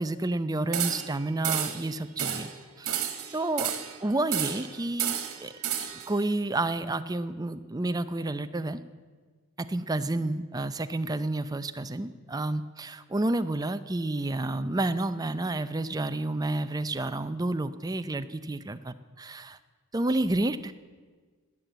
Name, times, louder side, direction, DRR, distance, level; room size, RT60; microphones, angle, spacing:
voice 1, 0.0-2.5 2.8-3.7 4.0-5.2 5.4-5.5 6.1-8.8 9.6-19.6 19.9-20.7, right 2 dB, 15° right, 12 dB, 0.5 m, -30 dB
sound 1, 0.7-1.2 1.4-1.8 2.2-2.5 2.8-4.0 4.3-4.7 5.0-6.1, right 9 dB, 75° right, 1.8 m, -31 dB
19.5 x 9.1 x 8.0 m, 1.5 s
head